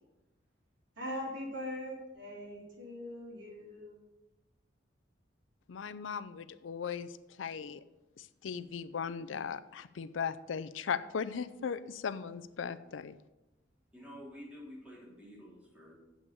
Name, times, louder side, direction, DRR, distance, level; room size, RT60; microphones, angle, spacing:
voice 1, 1.0-4.0, equal, 70° right, -2 dB, 3.1 m, -41 dB
voice 2, 5.7-7.1 7.4-7.8 8.2-13.1, left 6 dB, 80° left, 14 dB, 0.5 m, -38 dB
voice 3, 13.9-15.9, equal, 5° right, -8 dB, 4.1 m, -49 dB
7.9 x 6.0 x 6.9 m, 1.0 s
head